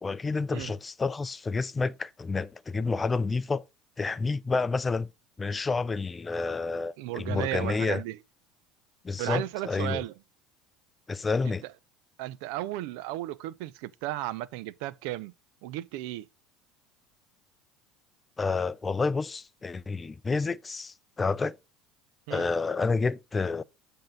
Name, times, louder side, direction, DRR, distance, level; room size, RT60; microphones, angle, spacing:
voice 1, 0.0-3.6 4.0-5.1 5.4-8.0 9.0-10.0 11.1-11.6 18.4-21.6 22.3-23.6, left 4 dB, 20° left, 0.5 m, -29 dB
voice 2, 7.0-8.2 9.2-10.1 11.4-11.7 12.2-15.3 15.6-16.3 22.3-22.4, right 16 dB, 65° right, 0.5 m, -34 dB
7.7 x 3.7 x 5.3 m
hypercardioid pair, 70°, 0 cm